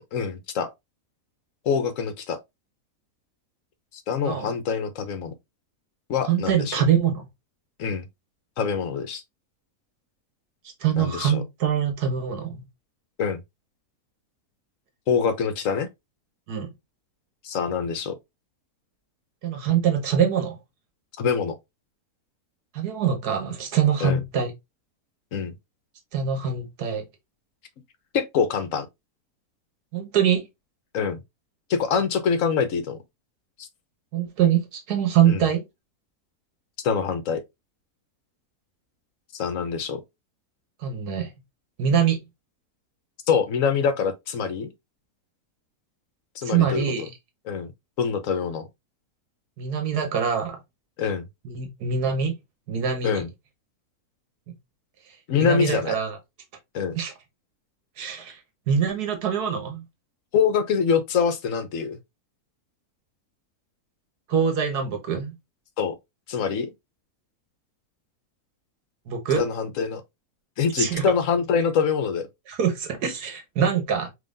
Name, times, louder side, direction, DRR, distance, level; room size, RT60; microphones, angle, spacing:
voice 1, 0.1-0.7 1.6-2.4 4.1-5.3 6.1-6.8 7.8-8.1 8.6-9.2 11.0-11.4 13.2-13.4 15.1-15.9 17.4-18.1 21.2-21.6 24.0-24.2 25.3-25.5 28.1-28.9 30.9-31.2 31.7-33.0 33.6-33.7 35.2-35.4 36.8-37.4 39.3-40.0 43.3-44.7 46.4-47.1 47.5-47.7 48.0-48.7 51.0-51.3 53.0-53.3 55.3-55.9 56.7-56.9 60.3-62.0 65.8-65.9 66.3-66.7 69.4-70.0 70.6-72.3, left 6 dB, 65° left, 1.1 m, -25 dB
voice 2, 6.3-7.3 10.8-12.6 16.5-16.7 19.4-20.6 22.7-24.5 26.1-27.0 29.9-30.4 34.1-35.6 40.8-41.3 41.8-42.2 46.4-47.1 49.6-50.6 51.5-52.3 52.7-53.2 55.3-56.2 57.0-57.1 58.0-58.4 58.7-59.8 64.3-65.3 69.1-69.4 70.8-71.0 72.5-74.1, right 8 dB, 85° right, 1.6 m, -24 dB
5.3 x 3.4 x 2.5 m
omnidirectional pair, 1.6 m